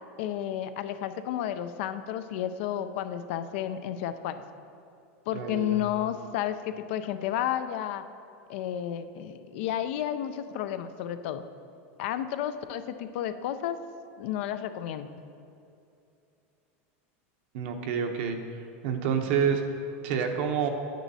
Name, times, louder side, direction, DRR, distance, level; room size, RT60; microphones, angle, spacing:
voice 1, 0.2-4.4 5.3-8.0 8.5-11.4 12.0-13.8 14.2-15.1, left 11 dB, 65° left, 11 dB, 0.4 m, -32 dB
voice 2, 5.3-5.8 17.5-19.6 20.0-20.7, right 7 dB, 65° right, 5 dB, 0.8 m, -28 dB
9.0 x 8.1 x 2.7 m, 2.7 s
supercardioid pair, 145°, 7 cm